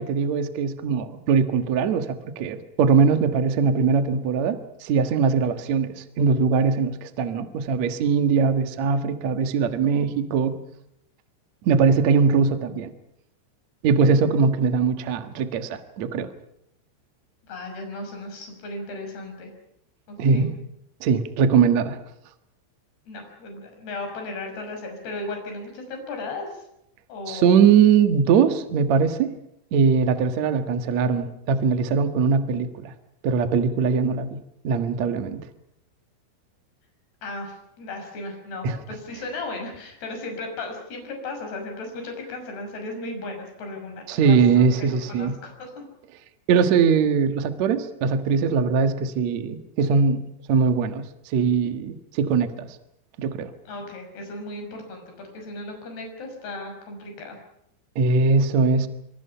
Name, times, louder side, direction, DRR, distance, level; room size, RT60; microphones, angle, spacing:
voice 1, 0.0-10.6 11.6-12.9 13.8-16.3 20.2-20.5 21.0-22.0 27.3-29.3 29.7-32.9 33.2-34.4 34.6-35.4 38.6-38.8 44.1-45.4 46.5-50.2 50.5-52.7 53.2-53.5 57.9-58.9, right 5 dB, 80° right, 8 dB, 1.6 m, -21 dB
voice 2, 17.5-19.5 20.1-20.5 23.1-26.6 27.1-27.6 37.2-45.7 53.7-57.4, left 2 dB, 50° left, 4 dB, 7.8 m, -36 dB
26.0 x 26.0 x 5.7 m, 0.79 s
omnidirectional pair, 5.9 m